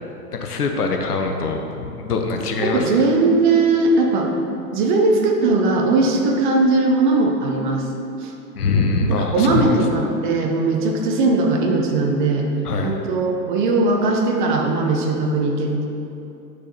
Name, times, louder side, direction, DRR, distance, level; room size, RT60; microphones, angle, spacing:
voice 1, 0.3-3.0 8.5-9.8 12.6-13.0, left 3 dB, 65° left, 3 dB, 0.9 m, -23 dB
voice 2, 2.6-4.3 4.7-7.9 8.2-8.3 9.0-12.5 12.8-15.8, right 3 dB, 30° right, 1 dB, 0.7 m, -19 dB
10.0 x 6.4 x 2.8 m, 2.8 s
figure-of-eight pair, 110°, 50 cm